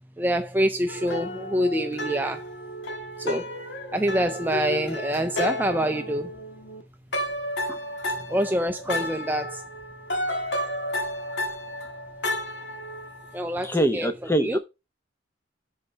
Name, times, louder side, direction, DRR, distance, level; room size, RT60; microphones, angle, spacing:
voice 1, 0.2-2.4 3.2-3.4 3.9-6.3 8.3-9.6 13.3-14.1 14.4-14.6, equal, 10° right, 0.4 m, -26 dB
sound 1, 0.9-6.8 7.1-13.4, left 1 dB, 70° left, 1.6 m, -32 dB
voice 2, 13.6-14.6, right 1 dB, 15° left, 0.8 m, -24 dB
7.7 x 4.4 x 5.6 m
head